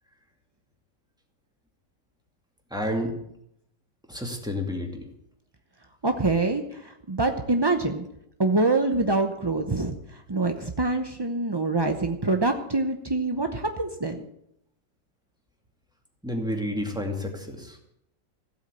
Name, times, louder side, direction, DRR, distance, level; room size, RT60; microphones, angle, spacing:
voice 1, 2.7-3.2 4.1-5.0 16.2-17.9, left 1 dB, ahead, 2 dB, 2.2 m, -30 dB
voice 2, 6.0-8.0 8.4-14.2, right 2 dB, 30° right, 5 dB, 0.4 m, -25 dB
15.5 x 8.2 x 8.2 m, 0.76 s
omnidirectional pair, 1.9 m